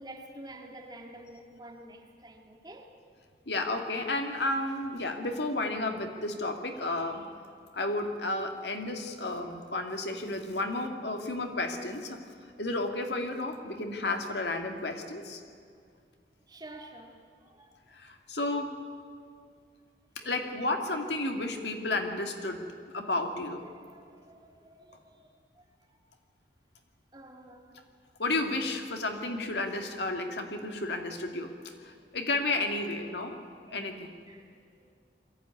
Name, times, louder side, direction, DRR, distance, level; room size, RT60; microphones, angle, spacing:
voice 1, 0.0-2.9 9.4-9.7 16.5-17.8 20.2-20.3 23.0-23.1 23.5-26.0 27.1-27.7 32.0-32.1 33.3-33.9 34.3-34.9, right 1 dB, 25° right, 2 dB, 2.1 m, -50 dB
voice 2, 3.5-7.3 7.7-12.2 12.6-15.4 17.9-18.8 20.2-22.6 22.9-23.6 28.2-33.4 33.7-34.1, left 2 dB, 80° left, 4 dB, 2.2 m, -32 dB
22.5 x 15.0 x 9.7 m, 2.3 s
head